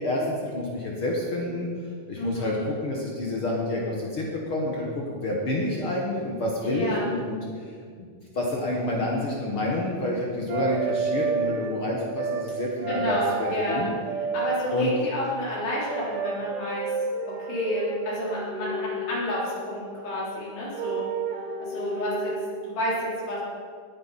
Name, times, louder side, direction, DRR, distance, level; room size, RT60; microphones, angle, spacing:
voice 1, 0.0-1.7 2.1-7.8 8.3-13.9 14.7-14.9, left 1 dB, 60° left, -2 dB, 1.4 m, -28 dB
voice 2, 2.2-2.6 6.6-7.1 12.9-13.8 14.3-16.9 17.5-21.1 21.6-22.3 22.6-23.4, left 1 dB, 80° left, -7 dB, 6.1 m, -30 dB
sound 1, 10.5-11.8 12.1-12.5 12.8-14.7 15.9-19.3 20.7-22.5, right 4 dB, 80° right, 3.6 m, -30 dB
19.5 x 9.5 x 4.2 m, 2.1 s
omnidirectional pair, 4.7 m